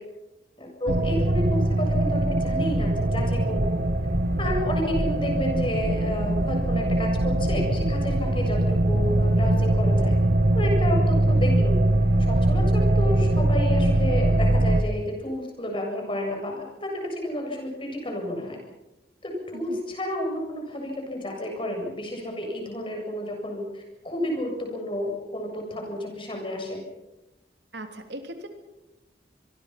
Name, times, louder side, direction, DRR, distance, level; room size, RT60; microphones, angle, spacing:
voice 1, 0.6-3.6 4.4-10.2 10.5-11.8 12.2-18.6 19.2-26.8, left 1 dB, 30° left, 1 dB, 7.6 m, -31 dB
sound 1, 0.9-14.8, right 1 dB, 60° right, 1.5 m, -22 dB
voice 2, 27.7-28.5, right 1 dB, 75° right, 6 dB, 2.9 m, -38 dB
26.5 x 22.5 x 5.9 m, 0.97 s
head